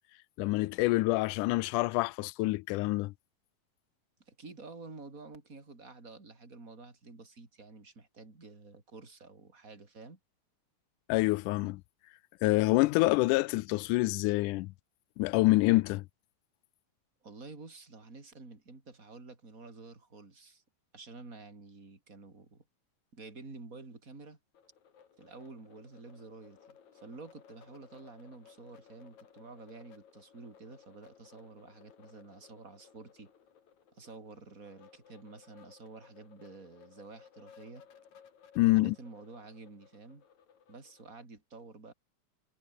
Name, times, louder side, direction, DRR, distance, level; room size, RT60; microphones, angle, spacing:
voice 1, 0.4-3.1 11.1-11.8 12.4-14.7 15.2-16.0 38.6-39.0, left 21 dB, 90° left, 2.1 m, -26 dB
voice 2, 4.3-10.2 17.2-20.6 20.9-22.6 23.1-24.4 25.2-33.3 33.9-37.9 38.7-40.2 40.7-41.9, right 3 dB, 25° right, 4.9 m, -50 dB
sound 1, 24.5-41.2, left 7 dB, 65° left, 3.9 m, -59 dB
omnidirectional pair, 3.6 m